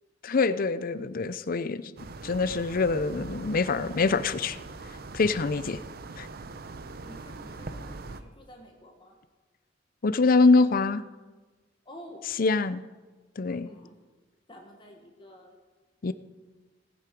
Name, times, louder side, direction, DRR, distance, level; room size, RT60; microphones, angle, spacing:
voice 1, 0.2-1.9 2.2-4.6 5.1-5.8 6.2-6.3 10.0-11.0 12.4-12.8 13.4-13.7 16.0-16.1, left 3 dB, 50° left, 14 dB, 0.5 m, -24 dB
sound 1, 2.0-8.2, right 3 dB, 55° right, 0.7 m, -41 dB
voice 2, 7.0-9.1 11.8-12.3 13.4-14.0 14.5-15.5, equal, 25° left, 1 dB, 1.5 m, -49 dB
18.5 x 7.6 x 5.2 m, 1.3 s
head